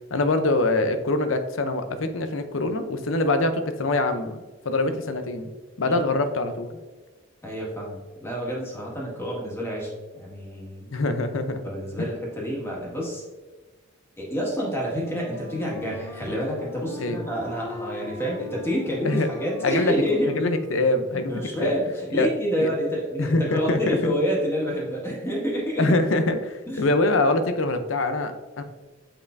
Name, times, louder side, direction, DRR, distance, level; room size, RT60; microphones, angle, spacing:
voice 1, 0.1-5.5 5.8-6.8 10.9-11.6 12.0-12.1 17.0-17.2 19.0-19.3 19.6-19.9 20.3-21.7 22.1-22.3 22.6-22.7 23.2-24.1 25.8-28.6, left 2 dB, 75° left, 9 dB, 0.7 m, -24 dB
voice 2, 5.9-6.2 7.4-10.9 11.6-13.2 14.2-20.4 21.3-25.9 26.7-26.8, equal, 15° left, -3 dB, 1.8 m, -28 dB
Wind instrument woodwind instrument, 14.8-20.9, left 2 dB, 30° left, 1.9 m, -41 dB
7.1 x 5.4 x 2.6 m, 1.3 s
head